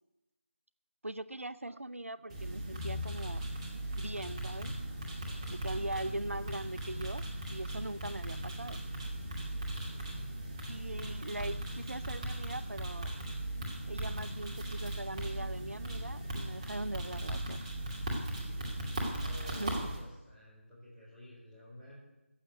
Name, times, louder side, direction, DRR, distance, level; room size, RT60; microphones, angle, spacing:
voice 1, 1.0-3.5 4.0-4.8 5.5-8.8 10.7-13.2 13.9-17.7 19.4-19.8, right 1 dB, 85° right, 16 dB, 0.5 m, -41 dB
sound 1, 2.3-20.0, right 1 dB, 25° right, 2.5 m, -38 dB
voice 2, 19.2-21.9, equal, 5° right, -11 dB, 4.8 m, -52 dB
15.0 x 7.2 x 8.4 m, 1.0 s
figure-of-eight pair, 160°, 7 cm